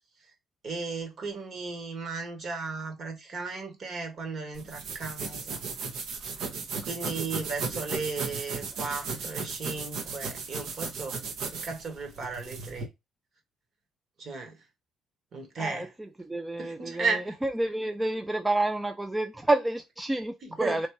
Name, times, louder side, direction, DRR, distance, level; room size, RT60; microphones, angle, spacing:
voice 1, 0.6-5.6 6.8-11.2 11.5-12.9 14.2-14.6 15.3-15.9 16.6-17.3 20.4-20.9, right 4 dB, 40° right, 1.6 m, -35 dB
Scratching pants, 4.5-12.8, right 4 dB, 70° right, 1.2 m, -35 dB
voice 2, 16.3-20.9, right 2 dB, 10° right, 0.4 m, -29 dB
3.2 x 2.8 x 4.5 m
cardioid pair, 130°, 0 cm